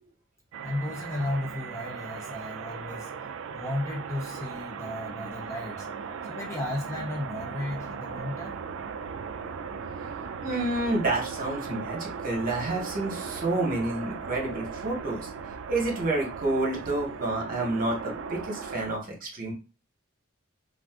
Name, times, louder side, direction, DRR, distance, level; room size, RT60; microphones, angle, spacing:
sound 1, 0.5-19.0, right 6 dB, 65° right, 0.3 m, -38 dB
voice 1, 0.6-3.1 3.5-5.9 6.3-8.6, left 1 dB, 15° left, 0.5 m, -34 dB
voice 2, 10.4-15.3 15.7-19.5, right 2 dB, 45° right, 1.0 m, -29 dB
2.5 x 2.3 x 3.5 m
head